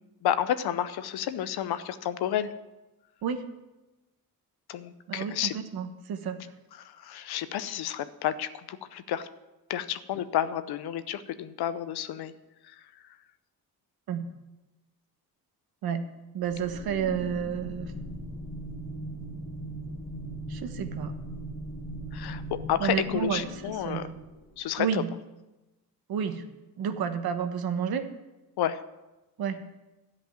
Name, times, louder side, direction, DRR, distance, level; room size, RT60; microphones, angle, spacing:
voice 1, 0.2-2.5 4.7-5.5 7.0-9.3 9.7-12.3 22.1-22.4 22.7-24.0 24.6-25.0 28.6-28.8, left 10 dB, 80° left, 13 dB, 0.8 m, -30 dB
voice 2, 5.1-6.4 14.1-14.3 15.8-16.0 16.3-17.9 20.5-21.1 22.8-24.2 24.8-25.1 26.1-26.4 26.8-28.1 29.4-29.7, right 7 dB, 70° right, 8 dB, 1.2 m, -31 dB
sound 1, 16.5-24.7, right 1 dB, 45° left, 2.0 m, -39 dB
12.5 x 5.3 x 9.1 m, 1.0 s
wide cardioid pair, 165°, 38 cm